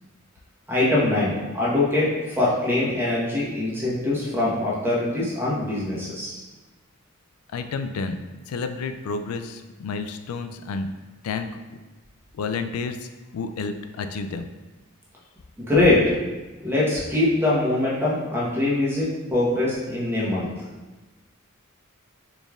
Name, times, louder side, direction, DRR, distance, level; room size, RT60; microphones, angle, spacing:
voice 1, 0.7-6.4 15.6-16.1 16.6-20.5, left 2 dB, 10° right, -7 dB, 1.0 m, -23 dB
voice 2, 7.5-8.2 8.5-10.9 11.2-11.5 12.3-14.5, left 4 dB, 85° left, 8 dB, 0.3 m, -30 dB
4.2 x 3.3 x 2.4 m, 1.2 s
head